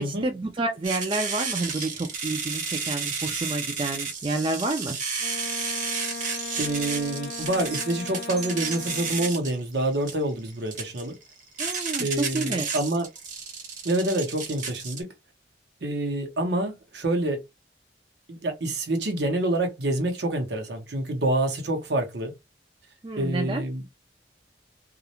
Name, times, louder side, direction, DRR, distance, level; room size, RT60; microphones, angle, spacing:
voice 1, 0.0-5.0 11.6-12.7 23.0-23.6, right 2 dB, 30° right, 0.3 m, -29 dB
sound 1, 0.8-15.0, right 5 dB, 45° right, 0.9 m, -32 dB
Wind instrument woodwind instrument, 5.2-9.5, left 4 dB, 60° left, 0.5 m, -39 dB
voice 2, 6.6-11.1 12.0-13.1 13.8-15.1 15.8-17.4 18.3-22.3 23.2-23.8, right 1 dB, 75° right, 0.8 m, -27 dB
2.4 x 2.0 x 2.8 m
head